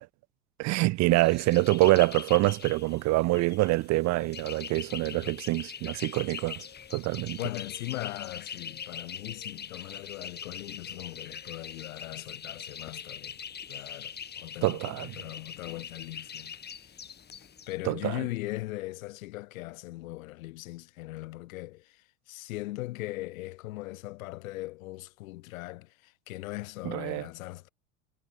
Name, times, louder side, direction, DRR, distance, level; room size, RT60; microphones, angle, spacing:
voice 1, 0.6-6.7 6.9-7.4 14.6-15.1 17.9-18.1 26.8-27.3, right 21 dB, 40° right, 0.6 m, -25 dB
sound 1, 1.1-17.7, left 7 dB, 25° left, 1.6 m, -42 dB
voice 2, 5.0-5.4 7.3-13.4 13.7-16.6 16.8-16.9 17.7-27.7, left 19 dB, 75° left, 1.1 m, -39 dB
hypercardioid pair, 95°, 41 cm